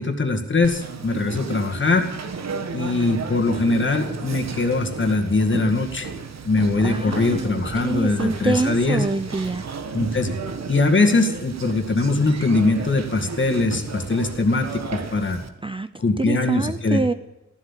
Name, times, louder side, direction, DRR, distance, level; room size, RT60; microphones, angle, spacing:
voice 1, 0.0-2.1 2.7-6.1 6.4-9.1 9.9-10.3 10.7-15.4 16.0-17.0, left 3 dB, 40° left, 4 dB, 2.1 m, -21 dB
Conversation, 0.6-15.5, right 5 dB, 65° right, 1.5 m, -33 dB
voice 2, 6.8-9.6 15.6-15.9 16.2-17.1, right 3 dB, 20° right, 12 dB, 0.5 m, -25 dB
15.5 x 12.0 x 7.4 m, 0.96 s
wide cardioid pair, 140°, 29 cm